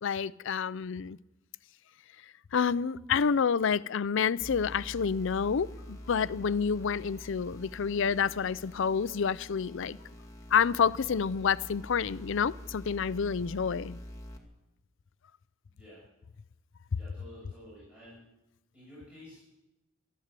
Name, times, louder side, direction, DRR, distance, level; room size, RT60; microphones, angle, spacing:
voice 1, 0.0-1.2 2.5-10.0 10.5-14.0, left 6 dB, 70° left, 0.5 m, -28 dB
sound 1, 4.4-14.4, equal, 15° left, 2.0 m, -46 dB
voice 2, 15.7-16.0 16.9-18.2 18.7-19.4, left 1 dB, 5° right, 7.5 m, -51 dB
14.0 x 13.0 x 7.6 m
head